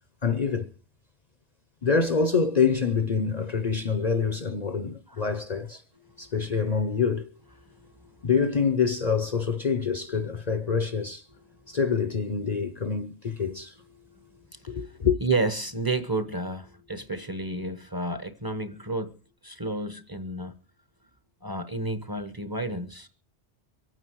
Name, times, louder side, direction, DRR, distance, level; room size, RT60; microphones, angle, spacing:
voice 1, 0.2-0.7 1.8-5.8 6.2-7.3 8.2-11.2 11.7-13.7 14.7-15.2, left 5 dB, 40° left, 0.9 m, -26 dB
voice 2, 7.6-8.1 14.0-14.9 15.2-19.1 19.4-20.5 21.4-23.1, right 2 dB, 20° right, 1.1 m, -31 dB
23.5 x 9.1 x 4.7 m
omnidirectional pair, 1.2 m